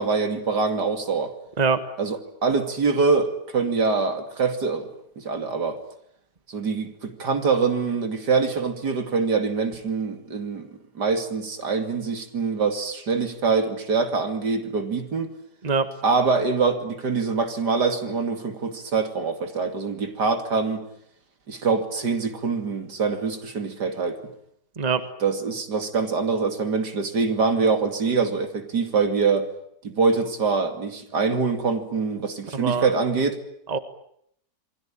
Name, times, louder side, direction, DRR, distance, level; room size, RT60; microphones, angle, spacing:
voice 1, 0.0-1.3 2.0-4.9 5.2-5.8 6.5-10.7 10.9-15.3 16.0-20.9 21.5-24.2 25.2-29.5 29.8-33.4, right 4 dB, 70° right, 3.2 m, -24 dB
voice 2, 32.5-32.9 33.7-33.8, right 5 dB, 25° right, 1.6 m, -23 dB
28.5 x 21.5 x 8.8 m
omnidirectional pair, 1.9 m